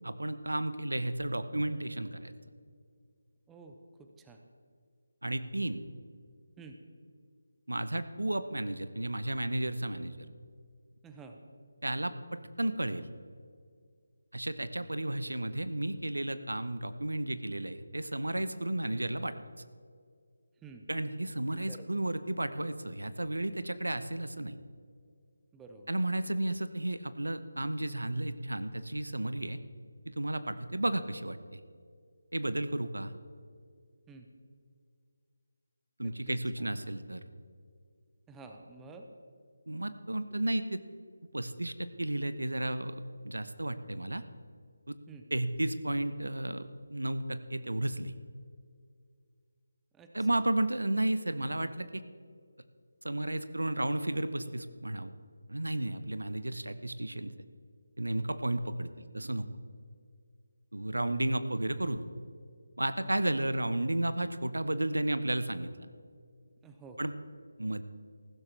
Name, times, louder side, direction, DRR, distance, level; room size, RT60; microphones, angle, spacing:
voice 1, 0.0-2.3 5.2-5.8 7.7-10.3 11.8-13.1 14.3-19.3 20.9-24.5 25.9-29.6 30.0-31.6 32.3-33.1 36.0-37.2 39.7-40.8 41.3-44.2 44.9-45.0 45.3-48.1 50.1-52.0 53.0-55.1 55.5-57.3 58.0-59.5 60.7-62.1 62.8-65.7 67.0-67.1 67.6-67.8, right 1 dB, 75° right, 12 dB, 0.8 m, -33 dB
voice 2, 3.5-4.4 6.6-6.8 11.0-11.4 20.6-20.9 21.5-21.9 25.5-25.9 34.1-34.3 36.0-36.4 38.3-39.1 45.1-45.2 49.9-50.4 66.6-67.0, right 4 dB, 10° right, 4 dB, 0.7 m, -50 dB
15.0 x 13.0 x 3.3 m, 2.2 s
figure-of-eight pair, 155°, 0 cm